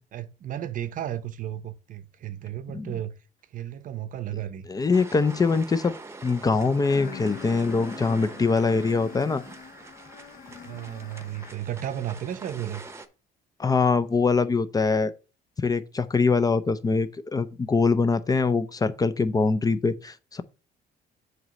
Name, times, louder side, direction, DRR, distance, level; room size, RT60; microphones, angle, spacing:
voice 1, 0.1-3.1 3.5-4.7 10.6-12.8, right 11 dB, 50° right, 0.7 m, -34 dB
voice 2, 4.7-5.9 6.2-9.4 13.6-15.1 15.6-20.4, left 4 dB, 20° left, 0.5 m, -23 dB
sound 1, 4.9-13.1, right 3 dB, 15° right, 0.8 m, -44 dB
sound 2, 6.9-11.8, left 6 dB, 55° left, 1.0 m, -43 dB
7.7 x 3.1 x 6.3 m
cardioid pair, 110°, 17 cm